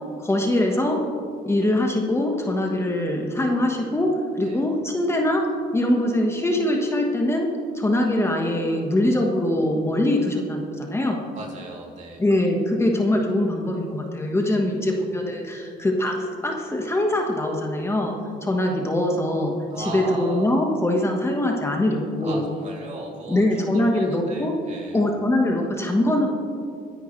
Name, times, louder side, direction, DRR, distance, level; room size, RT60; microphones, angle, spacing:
voice 1, 0.2-1.0 1.4-11.2 12.2-22.4 23.3-24.5 24.9-26.3, left 1 dB, 15° left, 1 dB, 1.4 m, -23 dB
voice 2, 11.3-12.2 19.7-20.5 22.2-25.0, right 2 dB, 45° right, -1 dB, 2.9 m, -36 dB
22.5 x 10.0 x 3.3 m, 2.5 s
cardioid pair, 110°, 17 cm